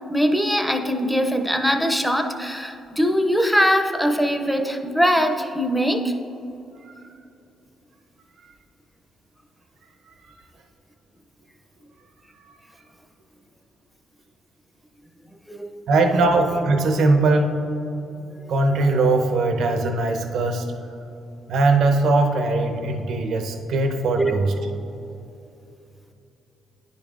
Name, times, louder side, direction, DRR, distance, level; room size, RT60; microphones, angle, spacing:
voice 1, 0.1-6.1 15.5-15.8 18.8-18.9 24.2-24.3, equal, ahead, 6 dB, 0.5 m, -21 dB
voice 2, 15.9-17.5 18.5-20.7 21.5-24.5, right 3 dB, 70° right, 4 dB, 0.7 m, -20 dB
9.8 x 5.3 x 2.5 m, 2.7 s
cardioid pair, 90°, 0 cm